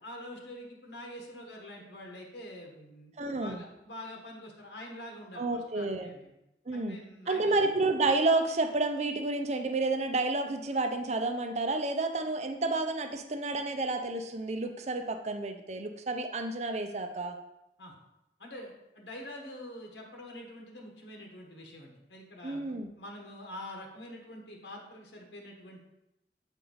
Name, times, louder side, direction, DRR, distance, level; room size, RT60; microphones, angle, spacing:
voice 1, 0.0-6.3 6.7-7.6 17.8-17.9 18.4-25.8, left 1 dB, 85° left, 0 dB, 1.4 m, -46 dB
voice 2, 3.2-3.6 5.4-6.1 6.7-7.0 7.3-17.4 22.4-22.9, right 2 dB, 40° right, 6 dB, 0.6 m, -30 dB
7.8 x 4.5 x 3.9 m, 0.89 s
head